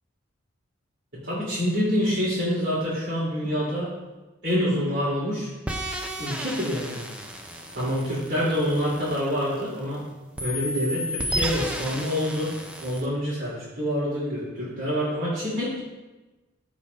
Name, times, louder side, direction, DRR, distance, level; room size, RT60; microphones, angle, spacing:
voice 1, 1.2-3.9 4.4-5.5 6.2-7.2 7.7-10.0 10.4-15.8, equal, 55° right, -13 dB, 2.9 m, -27 dB
sound 1, 5.7-10.0 10.4-13.1, equal, 5° right, 0.6 m, -33 dB
14.5 x 5.0 x 2.7 m, 1.1 s
head